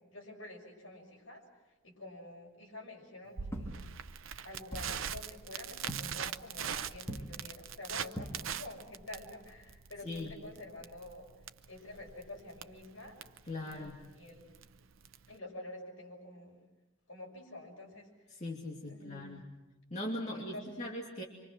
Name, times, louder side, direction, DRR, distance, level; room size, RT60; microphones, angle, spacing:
voice 1, 0.0-1.4 1.8-3.8 4.4-11.3 11.7-13.2 13.6-14.6 15.3-16.6 17.1-18.1 18.9-19.3 20.3-20.6, left 2 dB, 70° left, 0 dB, 6.6 m, -48 dB
Crackle, 3.4-15.3, right 8 dB, 70° right, 0.7 m, -42 dB
sound 1, 3.5-4.3 4.7-5.4 5.9-6.4 7.0-7.6 8.1-8.8 9.9-10.1 12.1-12.2, equal, 10° left, 1.8 m, -43 dB
voice 2, 13.5-14.0 18.3-19.5 19.9-21.2, left 1 dB, 35° left, -2 dB, 2.7 m, -40 dB
26.5 x 25.5 x 6.2 m, 1.1 s
head